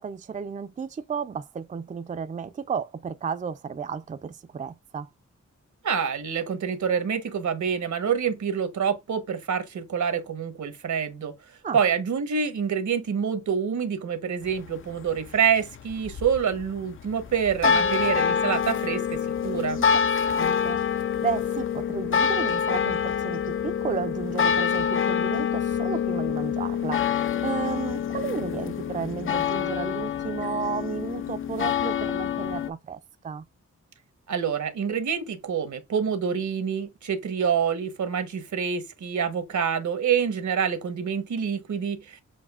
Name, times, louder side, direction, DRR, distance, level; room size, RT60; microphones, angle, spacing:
voice 1, 0.0-5.1 11.6-11.8 17.6-18.0 19.8-20.0 20.3-33.4, right 6 dB, 25° right, 0.4 m, -33 dB
voice 2, 5.8-11.3 11.7-19.8 34.3-42.2, right 7 dB, 80° right, 1.1 m, -27 dB
sound 1, 14.4-32.7, left 7 dB, 45° left, 0.4 m, -26 dB
7.2 x 2.7 x 2.4 m
wide cardioid pair, 110°, 29 cm